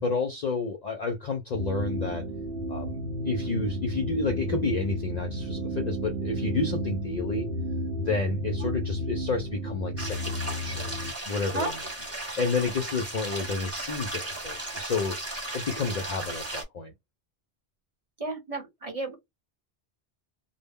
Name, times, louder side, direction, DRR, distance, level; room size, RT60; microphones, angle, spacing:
voice 1, 0.0-2.2 2.7-3.0 3.2-7.5 8.1-10.9 11.2-11.7 12.2-15.2 15.5-16.9, left 4 dB, 55° left, 0.5 m, -30 dB
sound 1, 1.5-11.1, equal, 75° right, 0.8 m, -32 dB
sound 2, 10.0-16.6, right 1 dB, 15° right, 1.0 m, -36 dB
voice 2, 18.2-19.1, right 2 dB, 35° right, 0.8 m, -32 dB
2.1 x 2.0 x 3.4 m
omnidirectional pair, 1.1 m